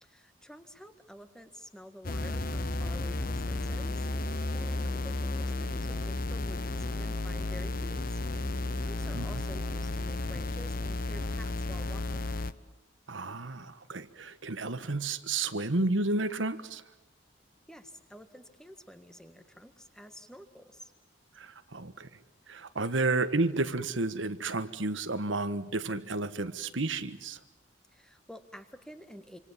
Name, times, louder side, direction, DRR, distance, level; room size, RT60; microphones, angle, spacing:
voice 1, 0.0-8.2 8.5-12.3 17.7-20.9 27.9-29.4, equal, 5° left, 1.6 m, -50 dB
sound 1, 2.0-12.5, left 2 dB, 45° left, 0.9 m, -33 dB
voice 2, 13.1-16.8 21.4-22.1 22.5-27.4, right 2 dB, 75° right, 1.4 m, -31 dB
27.0 x 26.0 x 7.4 m
head